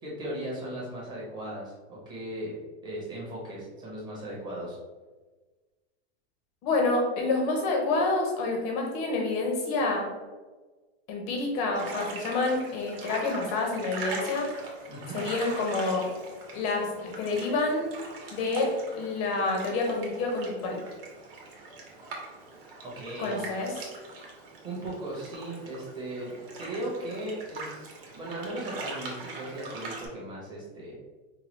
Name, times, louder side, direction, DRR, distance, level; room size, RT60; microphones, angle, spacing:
voice 1, 0.0-4.8 14.9-15.2 22.8-23.4 24.6-31.0, right 1 dB, 15° right, -5 dB, 0.7 m, -37 dB
voice 2, 6.6-10.0 11.1-14.5 15.1-16.0 16.5-17.9 18.3-20.8 23.2-23.7, left 3 dB, 20° left, 1 dB, 0.5 m, -28 dB
sound 1, 11.7-30.1, right 3 dB, 60° right, 1.1 m, -42 dB
4.6 x 2.3 x 2.9 m, 1.3 s
supercardioid pair, 170°, 33 cm